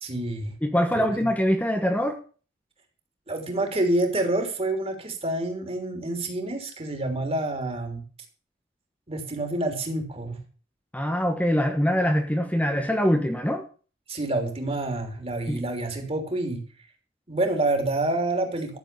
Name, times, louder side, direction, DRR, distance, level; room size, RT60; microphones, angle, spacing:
voice 1, 0.0-0.5 0.9-1.3 3.3-8.0 9.1-10.4 14.1-16.6 17.3-18.8, right 2 dB, 30° right, 4 dB, 3.3 m, -28 dB
voice 2, 0.6-2.2 10.9-13.6 15.5-15.6, equal, 5° left, 4 dB, 1.2 m, -23 dB
13.5 x 7.4 x 6.9 m, 0.39 s
head